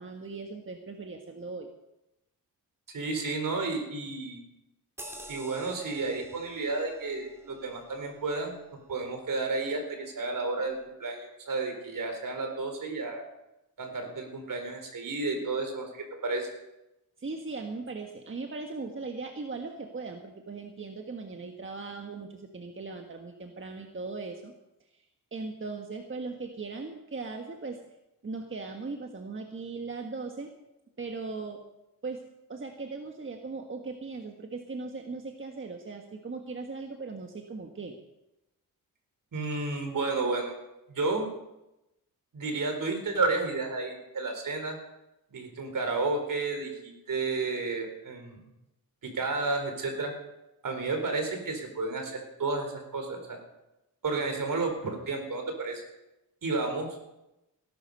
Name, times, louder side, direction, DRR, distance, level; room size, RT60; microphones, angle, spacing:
voice 1, 0.0-1.7 17.2-24.5 24.9-25.0 25.3-27.8 28.2-30.5 31.0-31.6 32.0-32.2 32.5-38.0, right 3 dB, 35° right, 3 dB, 1.5 m, -38 dB
voice 2, 2.9-4.4 5.3-8.6 8.9-13.2 13.8-16.5 39.3-40.6 40.9-41.3 42.3-44.8 45.3-48.4 49.0-50.1 50.6-53.4 54.0-55.9 56.4-56.9, right 3 dB, 60° right, 4 dB, 4.3 m, -32 dB
sound 1, 5.0-9.9 10.4-10.5, right 1 dB, 5° right, 3.1 m, -50 dB
18.0 x 12.0 x 5.5 m, 0.92 s
cardioid pair, 85°, 36 cm